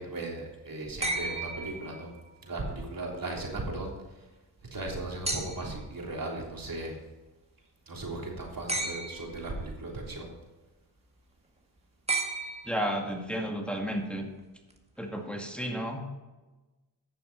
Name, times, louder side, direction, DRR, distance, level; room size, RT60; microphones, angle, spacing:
voice 1, 0.0-2.1 2.4-4.3 4.7-7.0 7.9-10.3, right 2 dB, 50° right, -1 dB, 3.4 m, -37 dB
sound 1, 1.0-2.4 5.3-5.9 8.7-9.5 12.1-13.1 14.7-14.8, right 2 dB, 15° right, 1.9 m, -34 dB
voice 2, 12.6-14.3 15.0-16.1, equal, ahead, 1 dB, 2.1 m, -32 dB
11.5 x 6.9 x 5.4 m, 1.2 s
cardioid pair, 50°, 43 cm